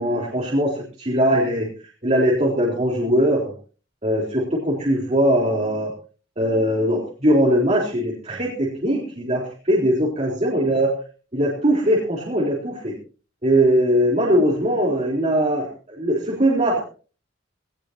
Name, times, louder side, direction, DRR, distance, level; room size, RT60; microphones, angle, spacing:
voice 1, 0.0-1.7 2.0-3.4 4.0-5.9 6.4-11.0 11.3-12.9 13.4-16.8, equal, 35° right, -3 dB, 3.9 m, -20 dB
19.0 x 18.0 x 2.8 m, 0.38 s
head